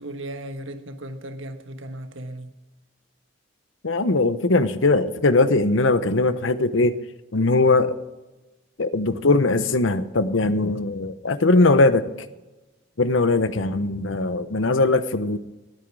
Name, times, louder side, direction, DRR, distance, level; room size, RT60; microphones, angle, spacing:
voice 1, 0.0-2.5, right 1 dB, 85° right, 1.4 m, -36 dB
voice 2, 3.8-7.0 7.3-7.9 8.8-12.1 13.0-15.4, left 2 dB, 85° left, 0.9 m, -20 dB
19.5 x 9.1 x 4.8 m
head